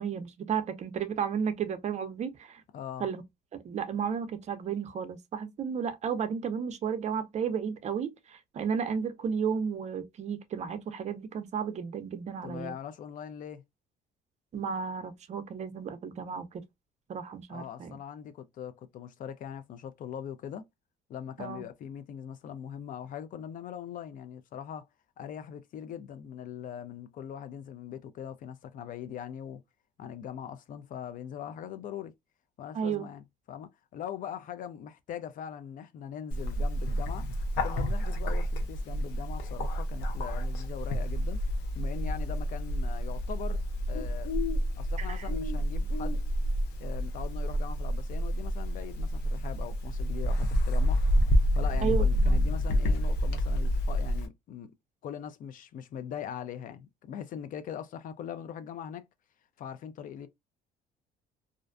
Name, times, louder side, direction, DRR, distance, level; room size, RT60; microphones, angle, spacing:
voice 1, 0.0-2.6 3.0-3.2 3.6-12.7 14.5-16.6 17.1-17.9 21.4-21.6 32.7-33.1 45.0-45.3 51.8-52.5, right 7 dB, 45° right, 0.5 m, -33 dB
voice 2, 2.7-3.1 12.4-13.6 17.5-20.6 21.1-24.9 25.2-29.6 30.0-32.1 32.6-37.3 37.6-41.4 41.8-43.6 43.9-44.3 44.8-46.2 46.8-51.0 51.5-54.7 55.0-59.1 59.6-60.3, left 9 dB, 55° left, 0.4 m, -41 dB
Bird, 36.3-54.3, equal, 90° left, 0.7 m, -29 dB
2.5 x 2.1 x 2.4 m
cardioid pair, 110°, 17 cm